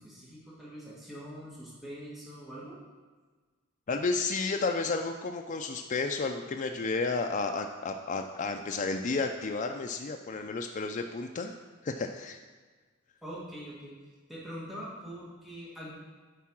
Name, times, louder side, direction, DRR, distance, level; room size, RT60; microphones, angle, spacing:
voice 1, 0.0-2.8 13.2-13.9 14.3-15.9, equal, ahead, -7 dB, 1.6 m, -43 dB
voice 2, 3.9-11.5 11.8-12.4, left 3 dB, 40° left, 4 dB, 0.4 m, -32 dB
8.3 x 4.7 x 5.9 m, 1.4 s
head